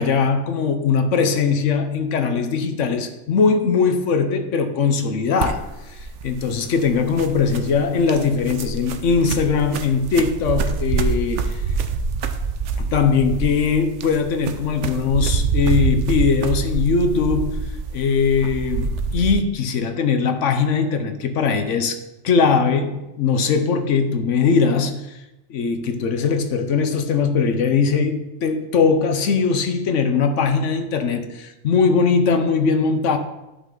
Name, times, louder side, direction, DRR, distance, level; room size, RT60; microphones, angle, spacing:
voice 1, 0.0-11.6 12.8-17.6 17.9-22.0 22.2-25.2 25.5-33.2, left 5 dB, 80° left, 1.2 m, -20 dB
sound 1, 5.4-19.4, right 5 dB, 75° right, 1.0 m, -26 dB
11.5 x 5.6 x 3.9 m
omnidirectional pair, 1.3 m